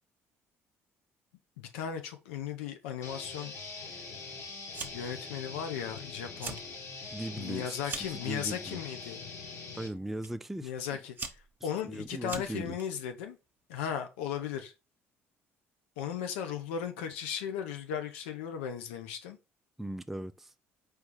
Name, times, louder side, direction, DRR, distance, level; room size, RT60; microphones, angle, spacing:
voice 1, 1.6-3.5 3.8-3.9 4.8-6.6 7.4-9.2 10.6-13.4 13.7-14.7 16.0-19.4, left 8 dB, 80° left, 0.5 m, -36 dB
sound 1, 3.0-9.9, left 4 dB, 50° left, 1.4 m, -43 dB
Fire, 4.7-5.2 5.5-6.0 6.3-6.7 7.1-8.2 9.0-9.4 10.2-10.3 10.9-12.8, right 4 dB, 30° right, 1.0 m, -41 dB
voice 2, 7.1-8.8 9.8-10.7 11.8-12.8 19.8-20.5, right 1 dB, 5° right, 0.4 m, -38 dB
4.5 x 3.1 x 3.2 m
hypercardioid pair, 55°, 7 cm